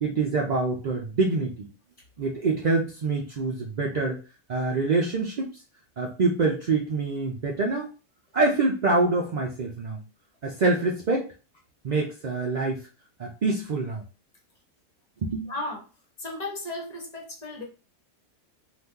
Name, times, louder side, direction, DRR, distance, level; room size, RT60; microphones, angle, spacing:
voice 1, 0.0-1.7 2.2-4.2 4.5-5.5 6.0-7.9 8.3-10.0 10.4-11.3 11.8-12.8 13.2-14.0 15.2-15.5, right 3 dB, 70° right, 0 dB, 0.4 m, -25 dB
voice 2, 15.5-15.8 16.2-17.6, left 2 dB, 35° left, 0 dB, 0.9 m, -34 dB
2.8 x 2.4 x 3.5 m, 0.32 s
omnidirectional pair, 1.4 m